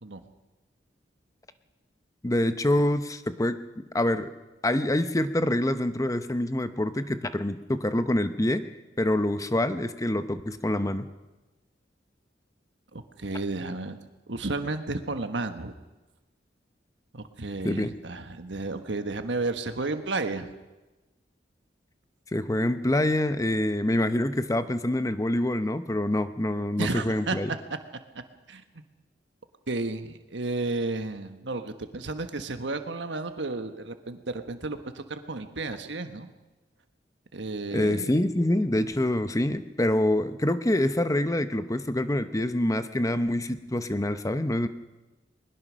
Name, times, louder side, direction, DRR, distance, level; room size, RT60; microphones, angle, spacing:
voice 1, 2.2-3.6 3.9-4.3 4.6-8.7 9.0-11.1 17.6-17.9 22.3-27.5 37.7-44.7, left 1 dB, 20° left, 10 dB, 0.8 m, -26 dB
voice 2, 12.9-14.0 14.3-15.7 17.1-20.5 26.8-27.4 28.5-28.6 29.7-36.3 37.3-38.1, right 3 dB, 75° right, 8 dB, 1.4 m, -32 dB
21.5 x 20.5 x 6.4 m, 1.1 s
head